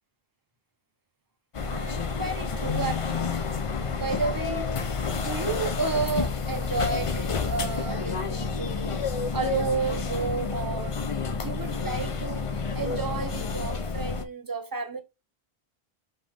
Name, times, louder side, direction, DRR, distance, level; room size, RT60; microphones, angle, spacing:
sound 1, 1.5-14.2, left 5 dB, 40° left, 0.5 m, -29 dB
voice 1, 1.6-3.4 3.9-4.7 5.1-9.0 9.3-12.5 12.7-15.0, right 4 dB, 25° right, 0.6 m, -32 dB
5.2 x 2.9 x 3.3 m
omnidirectional pair, 1.1 m